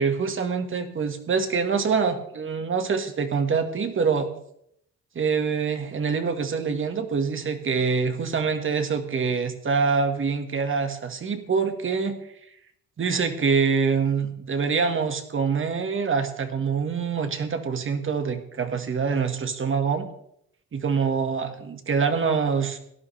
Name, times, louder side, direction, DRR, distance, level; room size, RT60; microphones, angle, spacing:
voice 1, 0.0-4.3 5.2-12.2 13.0-20.1 20.7-22.8, right 5 dB, 40° right, 7 dB, 1.9 m, -25 dB
17.0 x 11.5 x 3.5 m, 0.73 s
cardioid pair, 90°, 30 cm